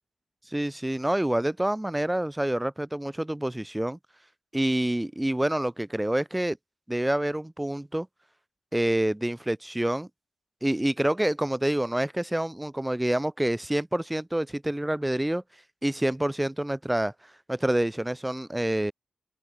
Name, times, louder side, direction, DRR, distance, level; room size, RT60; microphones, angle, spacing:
voice 1, 0.5-4.0 4.5-6.6 6.9-8.1 8.7-10.1 10.6-15.4 15.8-17.1 17.5-18.9, right 1 dB, 10° right, 6.6 m, -27 dB
cardioid pair, 75°, 0 cm